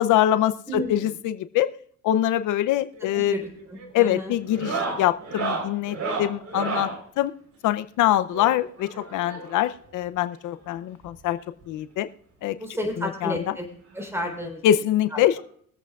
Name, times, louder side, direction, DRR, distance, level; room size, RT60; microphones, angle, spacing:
voice 1, 0.0-1.7 2.0-3.4 3.9-6.9 7.2-7.3 7.6-11.4 11.7-12.1 12.4-12.6 13.0-13.4 14.6-15.4, left 12 dB, 85° left, 12 dB, 0.6 m, -24 dB
voice 2, 0.7-1.1 3.0-4.4 12.6-13.7 13.9-14.6 15.1-15.2, equal, 10° right, 3 dB, 3.8 m, -32 dB
sound 1, 2.9-3.3 3.6-3.9 4.5-7.0 8.3-9.7 10.7-10.8 11.0-11.2 11.6-11.7 13.0-13.1 14.4-14.5, right 3 dB, 65° right, 4.0 m, -32 dB
23.0 x 8.1 x 2.4 m, 0.62 s
cardioid pair, 90°, 30 cm